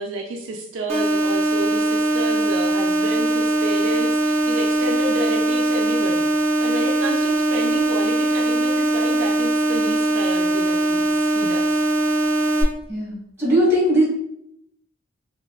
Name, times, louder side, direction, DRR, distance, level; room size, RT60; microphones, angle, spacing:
voice 1, 0.0-11.8, right 1 dB, 65° right, 1 dB, 0.4 m, -30 dB
sound 1, 0.9-12.6, right 1 dB, 30° right, 0.7 m, -21 dB
voice 2, 12.9-14.0, equal, 10° right, -6 dB, 1.3 m, -19 dB
3.5 x 2.8 x 2.3 m, 0.76 s
head